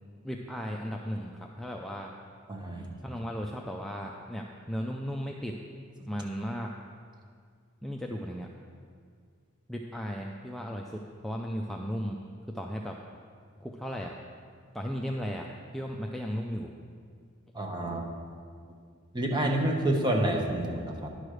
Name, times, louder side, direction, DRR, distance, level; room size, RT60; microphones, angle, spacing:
voice 1, 0.2-2.1 3.0-5.6 6.1-6.7 7.8-8.5 9.7-12.2 12.5-13.0 13.6-14.2 14.7-16.7, equal, ahead, 0 dB, 0.4 m, -35 dB
voice 2, 2.5-2.9 17.5-18.0 19.1-21.1, right 1 dB, 20° right, 1 dB, 0.9 m, -28 dB
10.5 x 4.9 x 6.3 m, 2.1 s
head